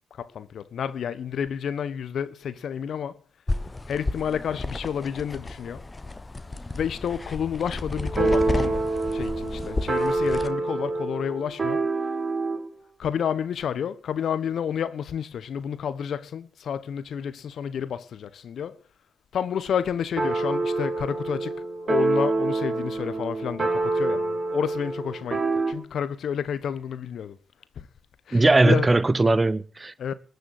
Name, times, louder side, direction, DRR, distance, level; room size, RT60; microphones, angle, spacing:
voice 1, 0.1-3.2 3.9-5.8 6.7-8.8 9.1-11.8 13.0-18.8 19.3-21.5 21.9-27.4 27.8-27.9 28.3-28.9 30.0-30.1, left 8 dB, 70° left, 1.2 m, -30 dB
sound 1, 3.5-10.5, left 2 dB, 30° left, 1.3 m, -32 dB
sound 2, 8.0-12.7 20.2-25.7, right 3 dB, 45° right, 4.6 m, -26 dB
voice 2, 28.3-30.1, right 2 dB, 30° right, 1.1 m, -20 dB
20.0 x 7.0 x 8.4 m
hypercardioid pair, 45°, 0 cm